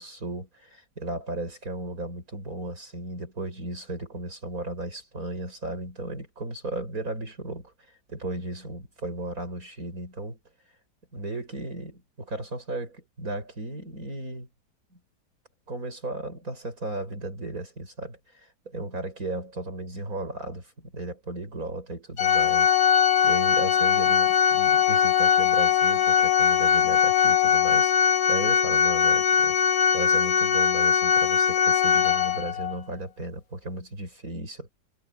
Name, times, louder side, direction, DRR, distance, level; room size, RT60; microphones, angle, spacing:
voice 1, 0.0-7.7 8.1-10.4 11.1-14.5 15.7-27.9 28.3-34.7, right 2 dB, 55° right, 7.1 m, -35 dB
Organ, 22.2-32.8, left 8 dB, 60° left, 1.5 m, -21 dB
omnidirectional pair, 1.8 m